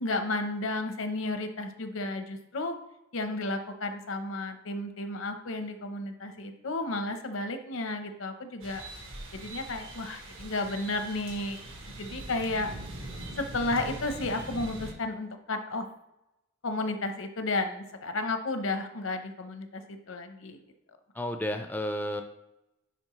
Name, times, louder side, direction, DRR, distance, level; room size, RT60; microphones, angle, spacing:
voice 1, 0.0-2.7 3.1-8.8 9.3-11.6 12.0-12.7 13.4-15.9 16.6-20.6, left 2 dB, 75° left, 7 dB, 0.8 m, -32 dB
sound 1, 8.6-14.9, right 1 dB, 75° right, 1.5 m, -42 dB
voice 2, 21.1-22.2, left 1 dB, 10° left, 5 dB, 0.4 m, -32 dB
10.5 x 4.3 x 3.1 m, 0.89 s
head